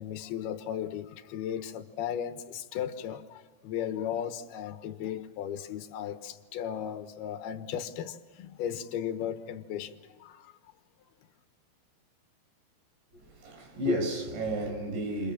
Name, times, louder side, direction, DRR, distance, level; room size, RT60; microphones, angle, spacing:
voice 1, 0.0-10.5, left 9 dB, 70° left, 8 dB, 2.9 m, -36 dB
voice 2, 13.1-15.3, equal, 70° right, 4 dB, 7.2 m, -32 dB
30.0 x 26.5 x 7.4 m, 1.3 s
omnidirectional pair, 5.2 m